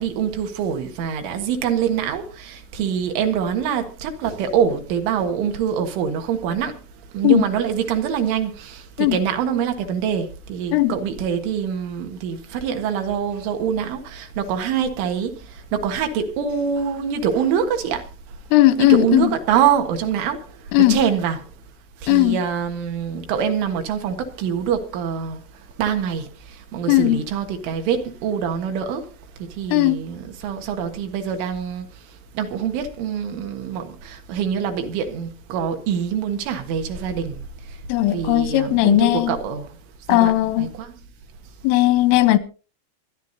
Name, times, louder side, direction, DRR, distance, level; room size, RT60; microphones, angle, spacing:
voice 1, 0.0-6.8 7.1-18.1 18.8-20.5 20.8-21.5 22.0-25.4 25.8-29.1 29.4-31.9 32.4-37.4 38.1-39.8 40.1-40.3 40.6-40.9, right 8 dB, 75° right, 4.0 m, -24 dB
voice 2, 18.5-19.3 20.7-21.0 22.1-22.4 26.9-27.2 29.7-30.0 37.9-39.4 40.1-40.7 41.6-42.4, left 16 dB, 90° left, 3.5 m, -17 dB
24.5 x 11.5 x 2.8 m
omnidirectional pair, 5.6 m